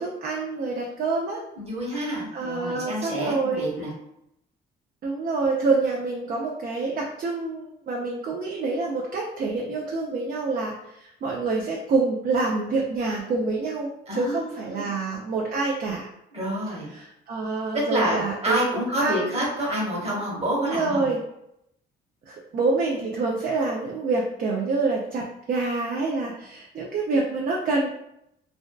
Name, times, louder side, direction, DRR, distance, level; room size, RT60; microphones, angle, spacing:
voice 1, 0.0-1.4 2.1-3.7 5.0-16.1 16.9-18.6 19.0-19.3 20.6-21.2 22.3-27.9, right 3 dB, 45° right, -1 dB, 0.4 m, -27 dB
voice 2, 1.6-3.9 14.1-14.9 16.3-16.9 17.7-21.1, equal, 30° right, -3 dB, 1.0 m, -28 dB
2.5 x 2.2 x 2.2 m, 0.80 s
cardioid pair, 90°, 20 cm